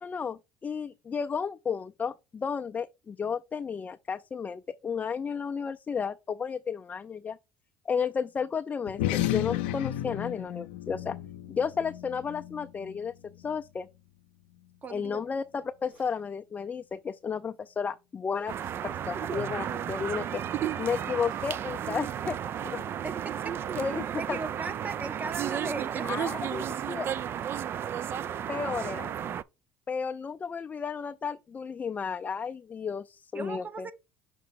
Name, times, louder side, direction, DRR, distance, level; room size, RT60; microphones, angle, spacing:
voice 1, 0.0-7.4 7.9-11.2 11.5-13.9 14.9-18.5 18.8-20.4 20.8-22.4 22.6-22.8 23.8-24.4 26.0-27.1 28.5-29.1 29.9-33.9, left 6 dB, 30° left, 0.4 m, -33 dB
sound 1, 8.9-13.7, left 14 dB, 80° left, 0.6 m, -33 dB
voice 2, 14.8-15.2 23.0-23.8 24.2-26.1 33.3-33.9, right 4 dB, 30° right, 0.9 m, -37 dB
sound 2, 15.8-16.3 18.3-18.9 20.8-21.6, right 1 dB, 75° right, 3.6 m, -60 dB
sound 3, 18.5-29.4, right 9 dB, 45° right, 0.3 m, -33 dB
6.1 x 3.7 x 4.4 m
hypercardioid pair, 75°, 5 cm